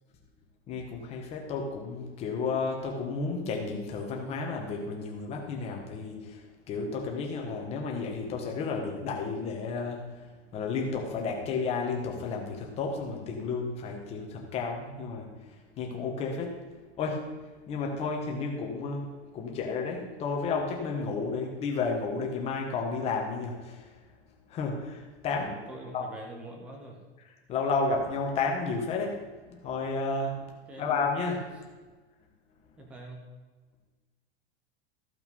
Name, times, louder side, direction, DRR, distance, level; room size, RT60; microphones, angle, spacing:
voice 1, 0.7-16.6 17.0-17.2 17.7-19.1 19.3-23.9 24.5-25.5 25.9-26.0 27.5-29.2 29.4-30.4 30.8-31.5, left 4 dB, 20° left, 1 dB, 1.4 m, -32 dB
voice 2, 25.3-27.0 30.4-30.9 32.8-33.3, right 1 dB, 5° right, 1 dB, 0.3 m, -45 dB
14.0 x 5.8 x 5.4 m, 1.3 s
supercardioid pair, 175°, 33 cm